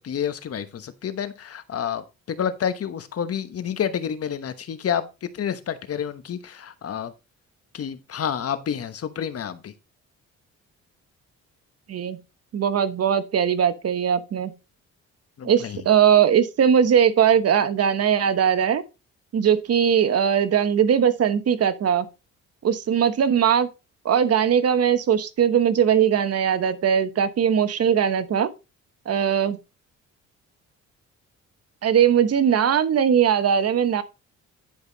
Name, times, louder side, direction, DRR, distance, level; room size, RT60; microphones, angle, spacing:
voice 1, 0.0-7.1 7.7-9.7 15.4-15.8, left 8 dB, 50° left, 1.1 m, -29 dB
voice 2, 12.5-14.5 15.4-18.8 19.3-22.1 22.6-23.7 24.0-28.5 29.1-29.6 31.8-34.0, right 8 dB, 55° right, 1.1 m, -20 dB
10.5 x 5.3 x 4.0 m
cardioid pair, 90°, 30 cm